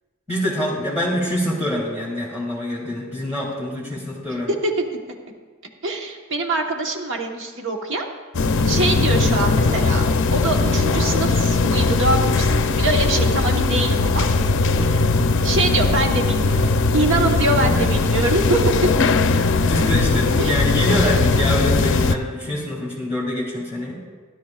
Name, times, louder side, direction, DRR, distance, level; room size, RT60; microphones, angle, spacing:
voice 1, 0.3-4.5 8.6-8.9 14.8-15.1 17.6-17.9 19.6-24.0, left 1 dB, 10° right, -8 dB, 2.1 m, -25 dB
voice 2, 5.8-8.1 8.7-10.0 10.3-14.3 15.4-18.6 20.4-20.6, right 2 dB, 60° right, 2 dB, 1.2 m, -23 dB
sound 1, 8.3-22.2, left 3 dB, 60° left, 0.5 m, -19 dB
16.5 x 11.5 x 2.4 m, 1.5 s
head